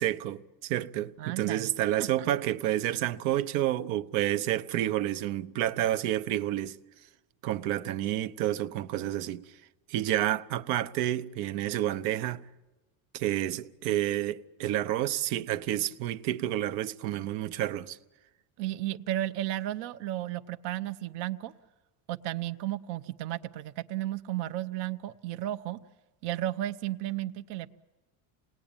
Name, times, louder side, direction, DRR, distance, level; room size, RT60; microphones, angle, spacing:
voice 1, 0.0-6.8 7.4-9.4 9.9-12.4 13.1-18.0, right 13 dB, 80° right, 1.0 m, -29 dB
voice 2, 1.2-1.7 2.2-2.3 18.6-21.5 22.1-25.8 26.2-27.7, right 14 dB, 60° right, 0.8 m, -33 dB
27.5 x 19.5 x 8.9 m
cardioid pair, 155°, 48 cm